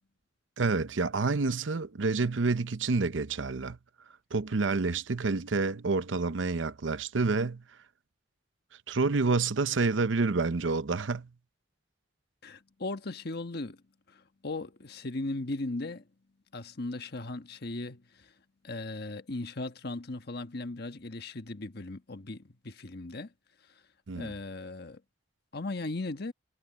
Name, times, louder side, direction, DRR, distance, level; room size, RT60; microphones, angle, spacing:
voice 1, 0.6-3.8 4.3-7.6 8.9-11.3 24.1-24.3, right 4 dB, 85° right, 0.7 m, -28 dB
voice 2, 12.4-13.8 14.1-16.0 16.5-18.3 18.6-23.3 24.1-25.0 25.5-26.3, left 2 dB, 60° left, 1.3 m, -37 dB
head